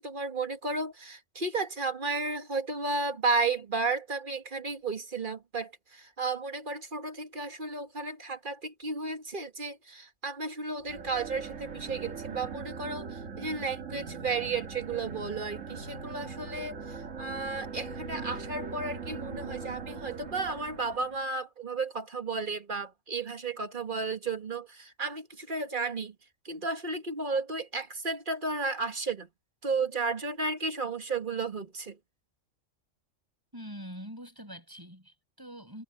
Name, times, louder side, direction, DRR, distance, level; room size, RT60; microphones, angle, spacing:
voice 1, 0.0-26.1 26.5-29.3 29.6-32.0, right 3 dB, 40° right, 1.8 m, -33 dB
sound 1, 10.8-21.3, right 5 dB, 70° right, 2.2 m, -41 dB
voice 2, 33.5-35.8, equal, 15° right, 7.6 m, -44 dB
omnidirectional pair, 1.4 m